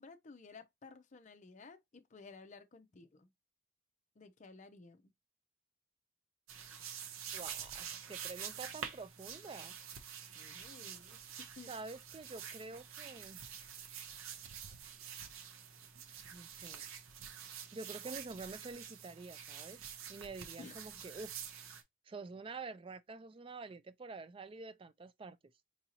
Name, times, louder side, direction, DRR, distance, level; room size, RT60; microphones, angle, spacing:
voice 1, 0.0-3.3 4.2-5.1 10.3-11.7 20.6-21.0, left 4 dB, 35° left, 0.5 m, -55 dB
sound 1, 6.5-21.8, right 8 dB, 75° right, 0.7 m, -47 dB
voice 2, 7.3-9.8 11.7-13.6 16.1-16.9 17.7-19.8 20.1-21.4 22.1-25.4, right 3 dB, 25° right, 0.3 m, -48 dB
4.6 x 2.7 x 2.8 m
head